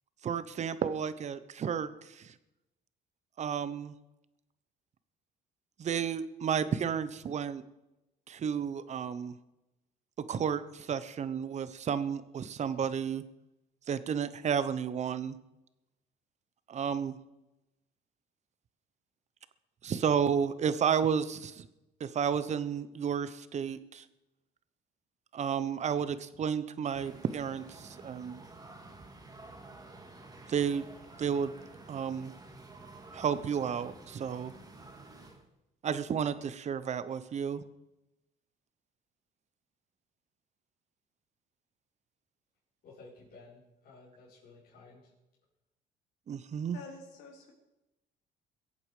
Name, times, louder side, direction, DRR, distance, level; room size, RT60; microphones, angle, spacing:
voice 1, 0.2-1.9 2.2-2.3 3.4-3.9 5.8-7.6 8.3-9.3 10.3-13.2 13.9-15.4 16.7-17.2 19.8-21.6 22.0-24.0 25.3-28.4 30.5-30.8 31.2-31.5 31.9-32.3 33.1-34.5 35.8-37.6 46.3-46.8, right 7 dB, 45° right, 14 dB, 0.9 m, -32 dB
sound 1, 26.9-35.5, right 2 dB, 20° right, 2.0 m, -51 dB
voice 2, 42.8-45.1, left 3 dB, 65° left, -8 dB, 4.9 m, -54 dB
voice 3, 46.7-47.5, left 3 dB, 85° left, 1 dB, 3.7 m, -48 dB
22.5 x 8.4 x 5.0 m, 0.95 s
cardioid pair, 110°, 17 cm